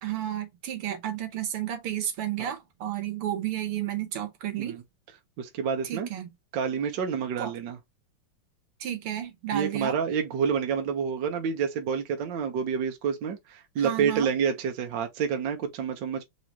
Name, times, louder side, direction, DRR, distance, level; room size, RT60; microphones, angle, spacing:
voice 1, 0.0-4.8 5.8-6.3 7.4-7.5 8.8-10.0 13.8-14.3, right 11 dB, 80° right, 2.1 m, -32 dB
voice 2, 5.4-6.1 6.5-7.8 9.5-16.2, right 7 dB, 60° right, 1.5 m, -28 dB
4.9 x 3.1 x 2.8 m
omnidirectional pair, 2.4 m